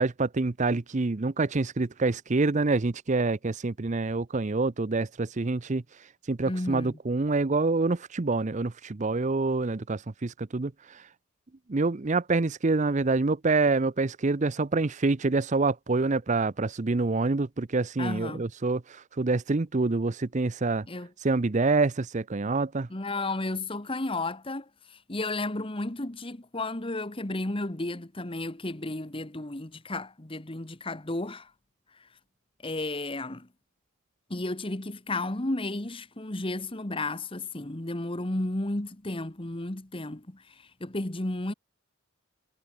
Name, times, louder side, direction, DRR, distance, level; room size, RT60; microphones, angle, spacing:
voice 1, 0.0-11.1 11.7-20.9 21.2-22.9, right 3 dB, 35° right, 0.6 m, -26 dB
voice 2, 6.5-7.0 18.0-18.4 20.9-21.1 22.9-31.5 32.0-32.1 32.6-33.5 34.3-41.5, left 2 dB, 25° left, 1.3 m, -33 dB
head